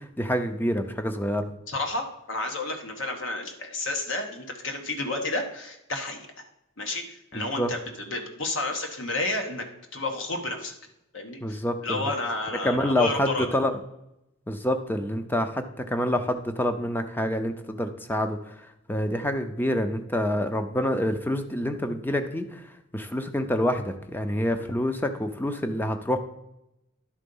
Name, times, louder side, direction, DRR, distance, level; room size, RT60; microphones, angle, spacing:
voice 1, 0.0-1.5 7.6-7.7 11.4-12.1 12.6-13.8 14.5-18.5 18.9-22.6 22.9-26.2, left 1 dB, 10° left, 7 dB, 0.6 m, -27 dB
voice 2, 1.7-6.2 6.8-9.6 9.9-10.7 11.1-13.5, left 2 dB, 65° left, 3 dB, 1.2 m, -31 dB
11.5 x 3.8 x 5.4 m, 0.87 s
head